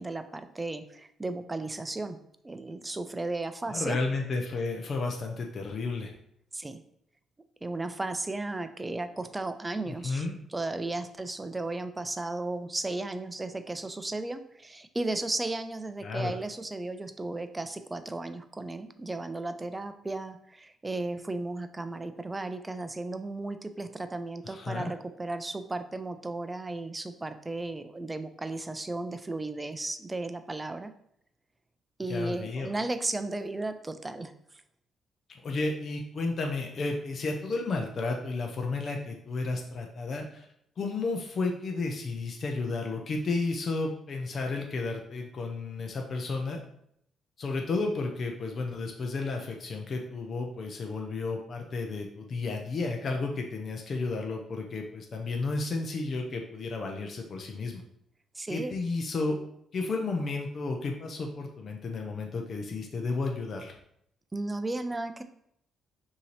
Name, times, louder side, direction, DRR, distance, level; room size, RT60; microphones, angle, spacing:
voice 1, 0.0-2.2 2.4-4.0 6.5-6.8 7.6-10.3 10.5-30.9 32.0-34.3 58.4-58.7 64.3-65.2, right 2 dB, 20° right, 10 dB, 0.4 m, -35 dB
voice 2, 3.7-6.1 9.9-10.4 16.0-16.3 24.4-24.9 32.1-32.7 35.4-40.5 40.8-46.6 47.4-57.8 58.5-59.4 59.7-63.8, left 3 dB, 50° left, 2 dB, 0.6 m, -32 dB
5.5 x 2.8 x 3.2 m, 0.73 s
cardioid pair, 90°, 0 cm